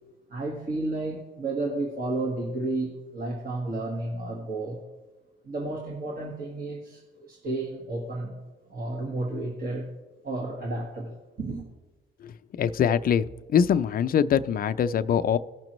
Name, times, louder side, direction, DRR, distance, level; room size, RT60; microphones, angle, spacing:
voice 1, 0.3-4.8 5.4-8.4 8.7-9.9 10.2-11.7, right 2 dB, 50° right, -1 dB, 1.5 m, -32 dB
voice 2, 12.2-15.4, left 8 dB, 45° left, 11 dB, 0.4 m, -23 dB
17.0 x 6.0 x 3.1 m, 1.2 s
cardioid pair, 90°, 20 cm